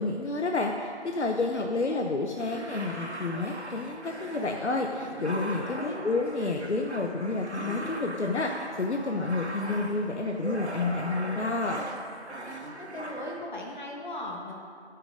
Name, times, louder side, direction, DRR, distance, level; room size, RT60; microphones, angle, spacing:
voice 1, 0.0-11.8, left 3 dB, 80° left, 2 dB, 0.9 m, -30 dB
voice 2, 1.5-2.0 5.7-6.0 12.7-14.5, left 1 dB, 45° left, -1 dB, 1.4 m, -38 dB
sound 1, 2.4-13.4, right 1 dB, 75° right, 1.5 m, -39 dB
13.0 x 6.0 x 5.1 m, 2.3 s
figure-of-eight pair, 165°, 34 cm